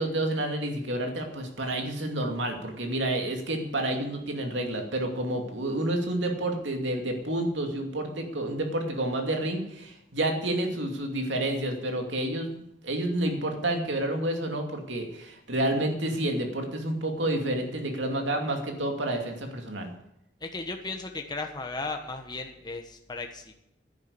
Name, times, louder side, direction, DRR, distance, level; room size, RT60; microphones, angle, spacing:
voice 1, 0.0-19.9, right 1 dB, 80° right, 3 dB, 2.6 m, -29 dB
voice 2, 20.4-23.5, left 3 dB, 25° left, 4 dB, 1.2 m, -36 dB
11.0 x 10.5 x 8.3 m, 0.79 s
head